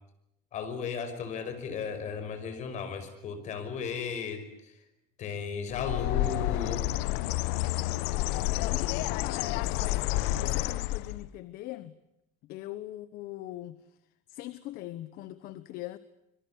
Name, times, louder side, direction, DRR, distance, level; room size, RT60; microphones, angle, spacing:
voice 1, 0.5-4.8 5.2-6.9, left 6 dB, 45° left, 5.4 m, -35 dB
Bird, 5.7-11.3, left 16 dB, 80° left, 1.0 m, -29 dB
voice 2, 8.2-11.9 12.4-14.0 14.3-16.0, left 15 dB, 60° left, 1.1 m, -42 dB
26.0 x 23.0 x 8.4 m
cardioid pair, 160°, 17 cm